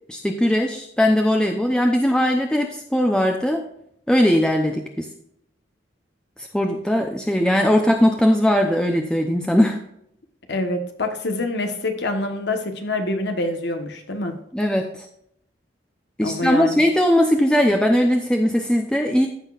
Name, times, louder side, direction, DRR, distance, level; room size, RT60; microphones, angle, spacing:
voice 1, 0.1-3.6 4.1-5.1 6.4-9.8 14.5-15.1 16.2-19.3, equal, 5° left, 0.7 m, -19 dB
voice 2, 10.5-14.4 16.2-16.8, left 2 dB, 65° left, 1.2 m, -26 dB
14.5 x 6.0 x 2.5 m
head